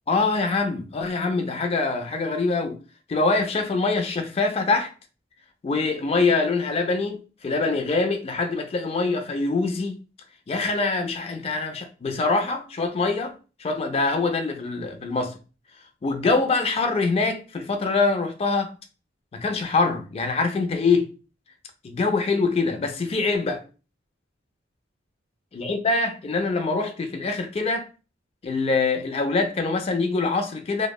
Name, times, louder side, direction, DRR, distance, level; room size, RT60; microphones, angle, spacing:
voice 1, 0.1-2.8 3.1-4.9 5.6-10.0 10.5-15.4 16.0-18.8 19.3-21.1 21.8-23.6 25.5-27.9 28.4-30.9, left 3 dB, 30° left, 0.3 m, -24 dB
2.7 x 2.0 x 2.2 m
head